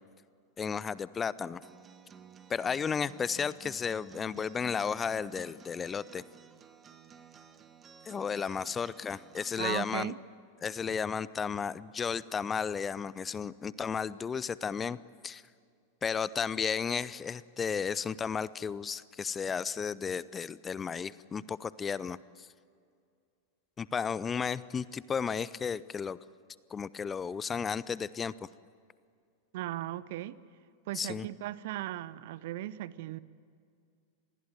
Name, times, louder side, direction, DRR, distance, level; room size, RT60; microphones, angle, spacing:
voice 1, 0.6-1.6 2.5-6.2 8.1-10.1 10.6-15.0 15.2-15.4 16.0-22.5 23.8-26.2 26.7-28.3 30.9-31.3, left 6 dB, 20° left, 20 dB, 0.6 m, -33 dB
Acoustic guitar, 1.6-9.6, right 6 dB, 20° right, 1.5 m, -54 dB
voice 2, 9.6-10.2 29.5-30.4 30.9-33.2, right 15 dB, 50° right, 19 dB, 0.8 m, -37 dB
27.5 x 20.0 x 9.2 m, 2.3 s
figure-of-eight pair, 90°, 0 cm